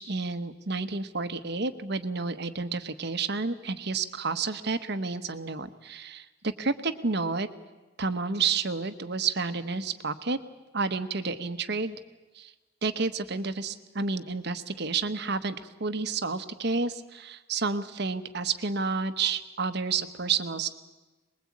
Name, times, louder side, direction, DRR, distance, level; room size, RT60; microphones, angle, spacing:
voice 1, 0.0-7.5 8.0-10.4 10.7-12.0 12.3-12.5 12.8-20.7, right 4 dB, 55° right, 10 dB, 1.1 m, -30 dB
23.0 x 21.0 x 8.6 m, 1.1 s
head